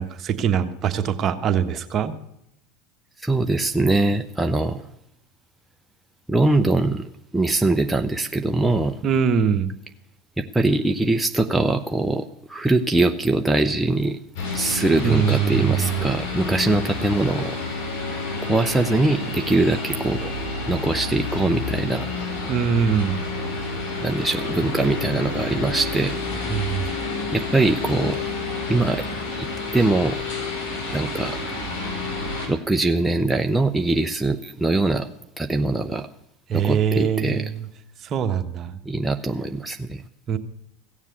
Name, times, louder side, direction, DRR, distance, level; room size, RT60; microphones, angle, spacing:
voice 1, 0.0-2.1 9.0-9.7 15.0-16.1 22.5-23.2 26.5-27.0 36.5-37.7 38.0-38.8 40.3-40.4, right 7 dB, 40° right, 8 dB, 1.3 m, -23 dB
voice 2, 3.2-4.9 6.3-9.0 10.4-14.2 14.5-17.6 18.4-20.3 20.7-22.1 24.0-26.2 27.3-28.2 28.7-29.0 29.4-29.5 29.7-30.2 30.9-31.4 32.5-35.1 35.4-36.1 36.5-37.4 38.8-40.0, right 2 dB, 5° right, 5 dB, 0.7 m, -22 dB
sound 1, 14.4-32.5, left 3 dB, 70° left, 5.3 m, -29 dB
16.0 x 7.3 x 8.4 m, 0.81 s
hypercardioid pair, 100°, 0 cm